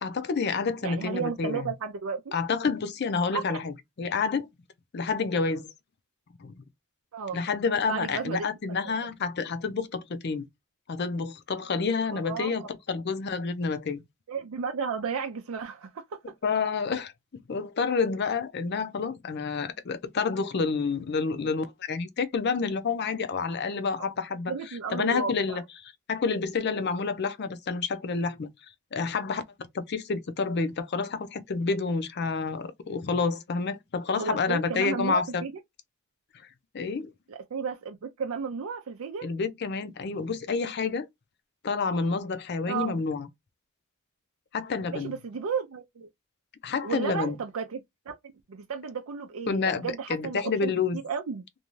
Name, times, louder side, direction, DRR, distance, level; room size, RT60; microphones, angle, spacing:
voice 1, 0.0-1.7 2.3-4.5 4.9-5.7 6.4-6.6 7.3-10.5 10.9-14.0 16.4-17.1 17.5-24.5 24.9-25.6 26.1-28.5 28.9-29.4 29.7-35.4 36.7-37.1 39.2-41.1 41.6-43.3 44.5-45.2 46.6-47.4 49.5-51.0, left 4 dB, 50° left, 0.5 m, -29 dB
voice 2, 0.8-2.4 3.3-3.6 7.1-7.4 7.9-8.5 12.1-12.7 14.3-16.2 24.0-24.1 24.5-25.6 34.1-35.5 37.3-39.3 42.7-42.9 44.9-46.1 46.8-48.1 48.5-50.7 51.0-51.5, right 5 dB, 80° right, 0.5 m, -33 dB
2.6 x 2.3 x 3.0 m
head